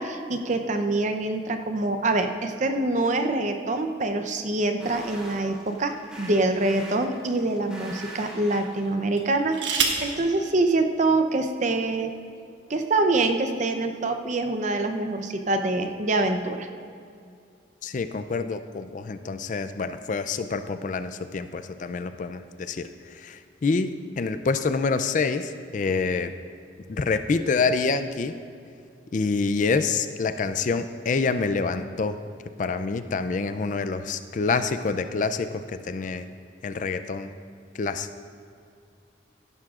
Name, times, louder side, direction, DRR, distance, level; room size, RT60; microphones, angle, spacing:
voice 1, 0.0-12.1 12.7-16.7, right 2 dB, 40° right, 6 dB, 0.6 m, -25 dB
sound 1, 4.8-9.0, right 1 dB, 5° right, 2.8 m, -42 dB
sound 2, 5.5-6.6 7.3-7.5 9.1-10.2 11.3-11.4 11.7-12.1, right 5 dB, 85° right, 1.2 m, -29 dB
voice 2, 17.8-26.3 26.9-28.4 29.1-32.2 32.6-36.3 36.6-37.3 37.7-38.1, left 4 dB, 45° left, 10 dB, 0.4 m, -27 dB
16.5 x 11.5 x 2.4 m, 2.4 s
head